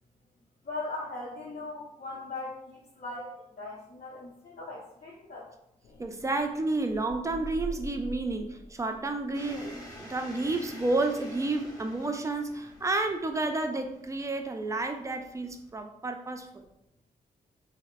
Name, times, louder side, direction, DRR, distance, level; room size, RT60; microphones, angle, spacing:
voice 1, 0.6-5.5, left 2 dB, 60° left, -8 dB, 0.8 m, -39 dB
sound 1, 5.8-13.5, left 1 dB, 85° left, 0.4 m, -47 dB
voice 2, 6.0-16.5, right 2 dB, 20° right, 5 dB, 0.3 m, -31 dB
sound 2, 9.3-15.8, equal, 20° left, 0.7 m, -49 dB
3.0 x 2.0 x 2.2 m, 0.80 s
cardioid pair, 55°, 16 cm